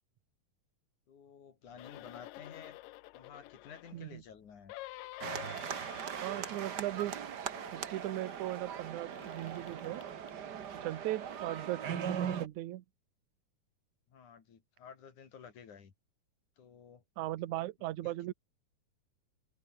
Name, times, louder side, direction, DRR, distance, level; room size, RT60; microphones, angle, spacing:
voice 1, 1.1-2.8 3.1-4.7 14.1-15.9 16.6-17.0 18.0-18.2, left 7 dB, 60° left, 4.6 m, -52 dB
sound 1, 1.7-4.0 4.7-7.2 7.4-8.5 9.1-10.4 11.1-11.2, left 18 dB, 85° left, 2.3 m, -50 dB
sound 2, 5.2-12.5, right 8 dB, 90° right, 0.9 m, -40 dB
voice 2, 6.2-7.2 7.7-10.0 10.7-12.8 17.2-18.3, right 15 dB, 65° right, 2.3 m, -38 dB
omnidirectional pair, 4.0 m